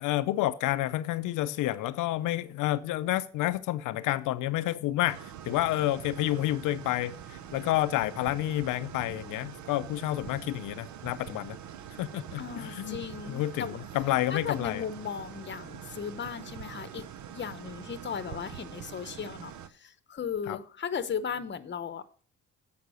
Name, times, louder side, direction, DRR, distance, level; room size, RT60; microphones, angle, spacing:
voice 1, 0.0-11.6 12.0-13.0 13.3-13.7 13.9-14.8 20.5-20.6, left 15 dB, 85° left, 0.5 m, -29 dB
sound 1, 5.1-19.7, right 9 dB, 70° right, 0.8 m, -44 dB
voice 2, 12.4-13.9 14.3-17.1 17.3-22.2, left 7 dB, 35° left, 0.9 m, -36 dB
8.1 x 5.8 x 6.2 m
cardioid pair, 90°, 30 cm